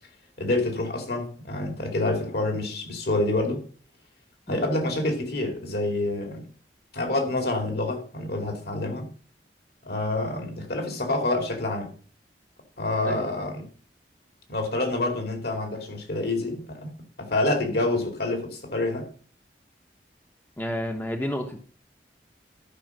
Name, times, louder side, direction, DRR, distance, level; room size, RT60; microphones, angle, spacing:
voice 1, 0.4-3.6 4.5-6.5 6.9-9.1 9.8-11.9 12.8-13.7 14.5-16.9 17.2-19.1, left 2 dB, 60° left, 2.6 m, -27 dB
voice 2, 20.6-21.6, left 1 dB, 10° left, 0.9 m, -30 dB
12.0 x 5.5 x 6.0 m
head